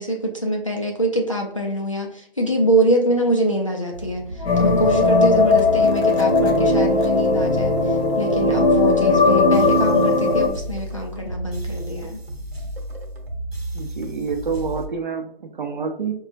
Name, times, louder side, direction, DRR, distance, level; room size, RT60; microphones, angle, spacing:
voice 1, 0.0-12.2, right 1 dB, 35° left, -1 dB, 0.4 m, -24 dB
sound 1, 3.9-14.9, right 1 dB, 75° right, 1.0 m, -33 dB
Wind instrument woodwind instrument, 4.3-9.1, left 5 dB, 5° right, 0.7 m, -39 dB
sound 2, 4.4-10.5, left 3 dB, 85° left, 0.9 m, -18 dB
voice 2, 13.7-16.1, right 5 dB, 55° right, 4 dB, 0.6 m, -27 dB
4.9 x 2.2 x 2.5 m, 0.65 s
hypercardioid pair, 175°, 30 cm